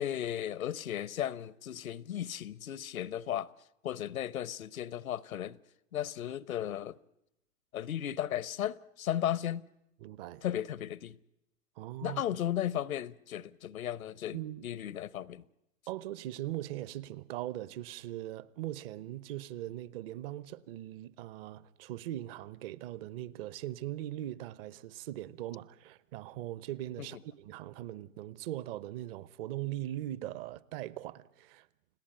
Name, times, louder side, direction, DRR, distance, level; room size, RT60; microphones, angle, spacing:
voice 1, 0.0-3.5 3.8-5.6 5.9-7.0 7.7-9.6 10.4-11.2 12.0-15.4 27.0-27.1, left 11 dB, 85° left, 0.9 m, -35 dB
voice 2, 10.0-10.4 11.8-12.2 14.3-14.7 15.9-31.7, right 14 dB, 45° right, 0.9 m, -40 dB
30.0 x 17.5 x 8.9 m
hypercardioid pair, 125°, 41 cm